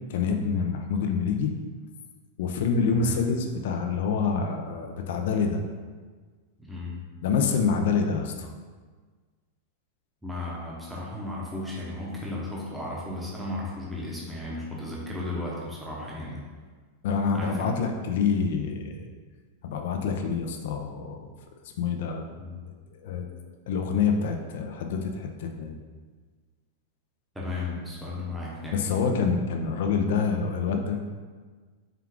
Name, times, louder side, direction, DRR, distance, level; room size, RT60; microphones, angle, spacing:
voice 1, 0.1-1.5 2.4-5.6 7.2-8.5 17.0-19.1 19.6-21.2 21.8-22.3 22.9-23.3 23.7-25.8 28.7-31.0, left 5 dB, 65° left, 4 dB, 0.4 m, -26 dB
voice 2, 2.9-3.3 6.6-7.0 10.2-16.4 17.3-17.8 22.4-22.6 27.3-28.9, left 2 dB, 5° right, -6 dB, 0.7 m, -35 dB
4.5 x 2.3 x 3.6 m, 1.5 s
supercardioid pair, 165°, 0 cm